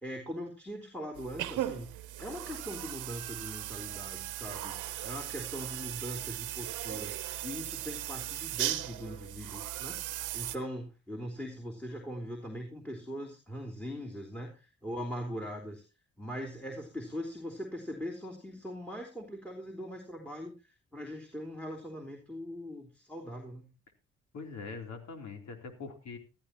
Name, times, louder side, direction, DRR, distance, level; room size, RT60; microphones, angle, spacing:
voice 1, 0.0-1.9 2.2-4.8 5.0-10.0 10.3-15.8 16.2-20.5 20.9-23.7, equal, 5° left, 1 dB, 3.3 m, -41 dB
sound 1, 1.2-10.6, right 14 dB, 85° right, 1.0 m, -38 dB
voice 2, 24.3-26.2, left 4 dB, 65° left, 4 dB, 3.6 m, -42 dB
15.5 x 13.5 x 3.0 m, 0.33 s
cardioid pair, 90°, 30 cm